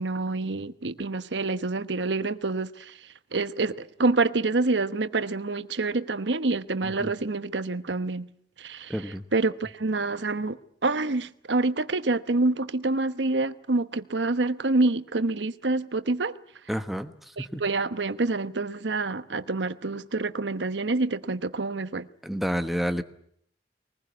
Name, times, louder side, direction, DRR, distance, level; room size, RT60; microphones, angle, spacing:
voice 1, 0.0-8.3 8.6-16.4 17.4-22.1, right 3 dB, 85° right, 1.1 m, -27 dB
voice 2, 8.9-9.2 16.7-17.1 17.5-17.6 22.2-23.0, equal, ahead, 1.1 m, -29 dB
23.0 x 20.0 x 9.5 m
head